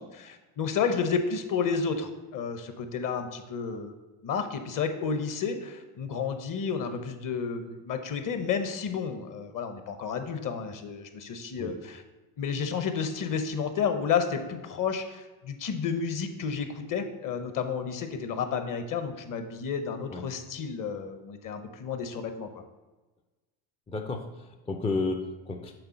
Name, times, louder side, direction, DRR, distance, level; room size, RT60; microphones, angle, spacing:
voice 1, 0.0-3.9 4.2-12.0 12.4-22.6, left 6 dB, 45° left, 8 dB, 0.9 m, -31 dB
voice 2, 23.9-25.7, left 3 dB, 15° left, 4 dB, 0.3 m, -32 dB
6.8 x 3.6 x 5.7 m, 1.2 s
cardioid pair, 110°, 45 cm